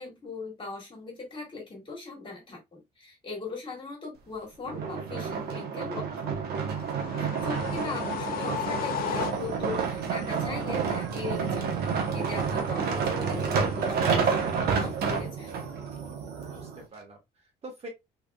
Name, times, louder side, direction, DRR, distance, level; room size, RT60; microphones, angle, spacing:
voice 1, 0.0-6.4 7.1-15.5, left 4 dB, 30° left, 2.2 m, -39 dB
sound 1, 4.7-15.7 16.3-16.4, right 6 dB, 70° right, 1.1 m, -29 dB
sound 2, 6.6-9.8, left 9 dB, 60° left, 0.5 m, -34 dB
voice 2, 7.4-8.2 16.5-17.9, right 1 dB, 35° right, 1.8 m, -45 dB
sound 3, 7.4-16.9, right 5 dB, 90° right, 1.2 m, -41 dB
3.4 x 3.4 x 2.4 m
cardioid pair, 110°, 17 cm